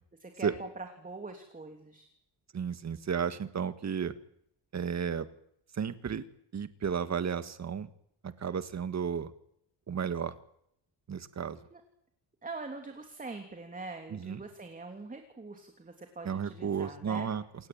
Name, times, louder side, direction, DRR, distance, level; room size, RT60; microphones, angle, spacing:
voice 1, 0.2-2.1 11.7-11.8 12.4-17.3, right 3 dB, 20° right, 5 dB, 3.2 m, -43 dB
voice 2, 2.5-4.1 4.7-5.3 5.7-6.2 6.5-7.9 8.2-9.3 9.9-10.4 11.1-11.6 14.1-14.4 16.2-17.4, right 7 dB, 40° right, 12 dB, 1.8 m, -33 dB
28.0 x 18.0 x 8.9 m, 0.73 s
cardioid pair, 140°, 43 cm